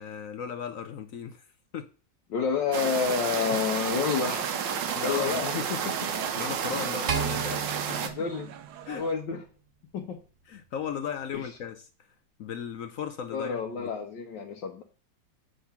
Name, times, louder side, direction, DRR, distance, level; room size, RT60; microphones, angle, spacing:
voice 1, 0.0-1.5 1.7-1.9 4.9-8.1 8.9-9.0 10.5-12.1 12.4-13.9, left 7 dB, 65° left, 0.8 m, -37 dB
voice 2, 2.3-4.5 5.0-5.6 8.0-8.5 8.9-9.4 9.9-10.2 11.3-11.5 13.3-14.8, left 6 dB, 85° left, 1.6 m, -29 dB
sound 1, 2.7-8.1, right 7 dB, 90° right, 1.6 m, -31 dB
sound 2, 4.2-9.1, right 9 dB, 70° right, 1.2 m, -46 dB
sound 3, 7.1-9.5, right 7 dB, 50° right, 1.1 m, -34 dB
7.8 x 3.8 x 5.7 m
omnidirectional pair, 1.9 m